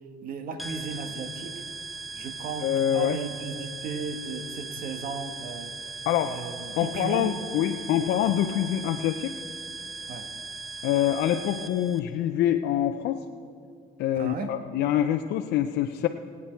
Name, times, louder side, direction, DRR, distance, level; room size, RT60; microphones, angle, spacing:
voice 1, 0.2-1.5 2.1-5.7 6.2-7.3 10.1-10.3 14.1-14.6, right 5 dB, 60° right, 7 dB, 1.3 m, -35 dB
sound 1, 0.6-12.0, right 4 dB, ahead, 0.6 m, -39 dB
voice 2, 2.6-3.2 6.1-6.4 6.8-9.3 10.8-13.2 14.0-16.1, left 11 dB, 75° left, 6 dB, 0.6 m, -25 dB
23.5 x 8.7 x 4.4 m, 2.3 s
cardioid pair, 110°, 17 cm